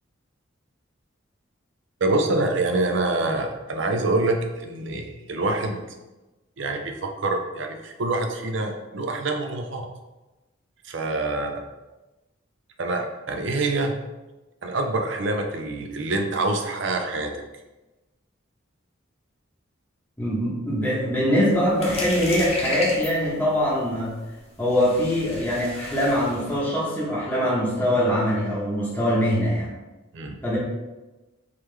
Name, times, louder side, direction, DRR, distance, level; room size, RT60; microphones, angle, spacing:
voice 1, 2.0-5.8 6.6-9.8 10.8-11.6 12.8-14.0 14.6-17.3 30.1-30.4, right 2 dB, 60° right, 4 dB, 0.5 m, -26 dB
voice 2, 20.2-24.2 24.6-29.7 30.4-30.6, equal, 10° left, -7 dB, 0.9 m, -23 dB
sound 1, 21.5-26.6, left 1 dB, 30° left, 0.6 m, -35 dB
3.7 x 3.0 x 3.2 m, 1.1 s
head